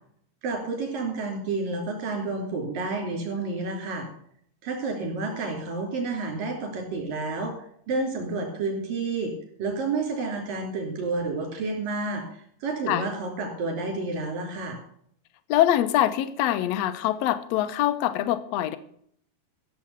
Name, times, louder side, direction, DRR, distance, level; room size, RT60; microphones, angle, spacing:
voice 1, 0.4-4.1 4.6-7.5 7.9-9.3 9.6-12.2 12.6-14.8, right 3 dB, 85° right, 2 dB, 4.9 m, -30 dB
voice 2, 15.5-18.8, left 12 dB, 70° left, 12 dB, 1.7 m, -24 dB
14.5 x 7.3 x 6.9 m, 0.65 s
omnidirectional pair, 3.8 m